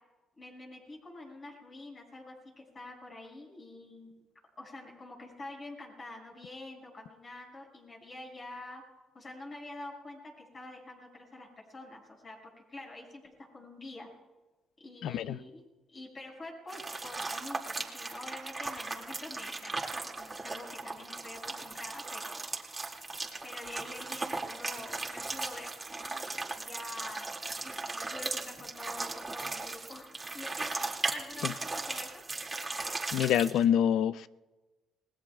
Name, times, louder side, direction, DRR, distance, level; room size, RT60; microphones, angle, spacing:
voice 1, 0.4-4.2 4.6-8.8 9.1-14.1 14.8-15.6 15.9-19.9 20.2-22.8 23.4-25.7 26.0-27.3 27.6-30.7 31.1-32.2, left 2 dB, 40° left, 6.2 m, -47 dB
voice 2, 15.0-15.4 31.4-31.5 33.1-34.3, left 10 dB, 80° left, 0.4 m, -26 dB
sound 1, 16.7-33.6, right 3 dB, 20° right, 2.3 m, -37 dB
29.0 x 19.5 x 2.4 m
cardioid pair, 90°, 0 cm